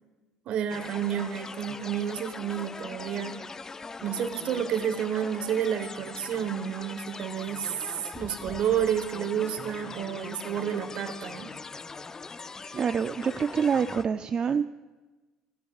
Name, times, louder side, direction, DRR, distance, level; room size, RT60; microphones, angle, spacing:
voice 1, 0.5-3.4 4.0-11.5, right 9 dB, 60° right, 9 dB, 1.2 m, -30 dB
sound 1, 0.7-14.0, left 4 dB, 25° left, 0.4 m, -41 dB
voice 2, 12.7-14.7, right 6 dB, 40° right, 10 dB, 0.4 m, -26 dB
16.0 x 10.5 x 2.4 m, 1.2 s
supercardioid pair, 80°, 2 cm